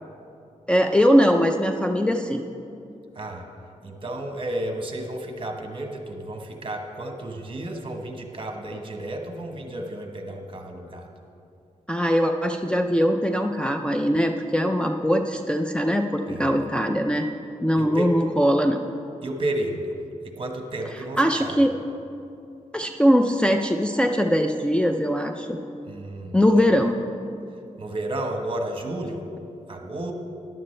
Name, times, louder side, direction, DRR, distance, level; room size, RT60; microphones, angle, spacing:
voice 1, 0.7-2.4 11.9-17.3 17.6-18.8 21.2-21.7 22.7-25.6 26.3-26.9, equal, 5° left, 3 dB, 0.5 m, -21 dB
voice 2, 3.1-3.5 3.8-11.1 16.3-16.6 17.7-18.1 19.2-20.0 20.2-21.7 25.8-26.4 27.8-29.2 29.7-30.1, right 1 dB, 40° right, 3 dB, 1.3 m, -32 dB
13.5 x 11.0 x 3.3 m, 2.6 s
wide cardioid pair, 90°, 13 cm